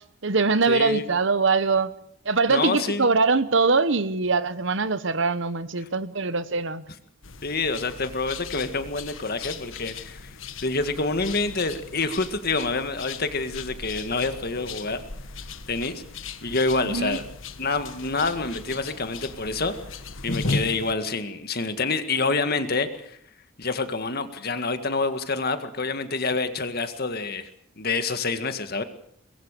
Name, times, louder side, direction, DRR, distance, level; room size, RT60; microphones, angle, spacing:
voice 1, 0.0-1.9 2.2-6.8 16.8-17.2, right 4 dB, 60° right, 1.0 m, -23 dB
voice 2, 0.7-1.1 2.5-3.0 7.4-10.3 10.6-15.0 15.7-16.0 16.4-17.2 17.6-19.7 20.2-23.2 23.6-27.5 27.8-28.8, left 3 dB, 50° left, 1.9 m, -27 dB
sound 1, 7.2-20.9, left 3 dB, 70° left, 1.6 m, -37 dB
23.0 x 21.5 x 6.8 m
head